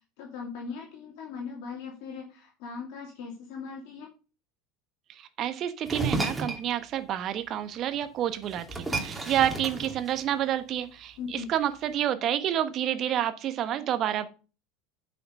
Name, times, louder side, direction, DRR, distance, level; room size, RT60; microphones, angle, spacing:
voice 1, 0.2-4.1 11.2-11.5, left 5 dB, 60° left, 0 dB, 2.6 m, -39 dB
voice 2, 5.2-14.3, right 11 dB, 45° right, 12 dB, 1.2 m, -29 dB
sound 1, 5.8-6.6 8.0-8.1 8.4-10.5, right 3 dB, 10° right, 2.7 m, -32 dB
9.3 x 5.8 x 5.2 m, 0.34 s
hypercardioid pair, 75°, 0 cm